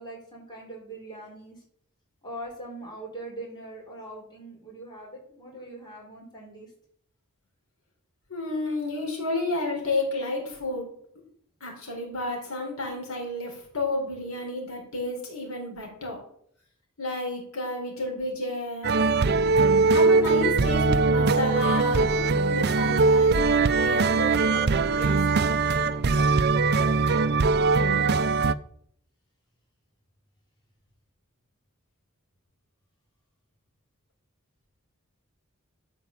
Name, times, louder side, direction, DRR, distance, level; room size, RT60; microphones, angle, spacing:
voice 1, 0.0-1.6 2.2-6.7, right 1 dB, 20° left, -3 dB, 4.9 m, -41 dB
voice 2, 8.3-11.0 11.6-16.3 17.0-19.0 19.8-25.2, left 2 dB, 90° left, 0 dB, 4.4 m, -31 dB
sound 1, 18.8-28.5, right 4 dB, 50° right, 0.5 m, -21 dB
12.0 x 6.0 x 7.3 m, 0.66 s
head